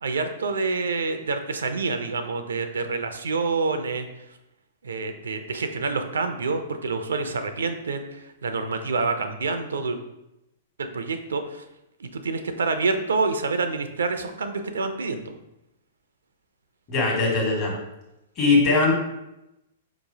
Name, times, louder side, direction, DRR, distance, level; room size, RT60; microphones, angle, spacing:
voice 1, 0.0-4.1 4.8-10.0 10.9-11.6 12.0-15.4, right 4 dB, 80° right, 8 dB, 0.4 m, -27 dB
voice 2, 16.9-17.8 18.4-18.9, left 3 dB, 40° left, -2 dB, 1.4 m, -20 dB
4.6 x 3.0 x 2.7 m, 0.91 s
hypercardioid pair, 120°, 0 cm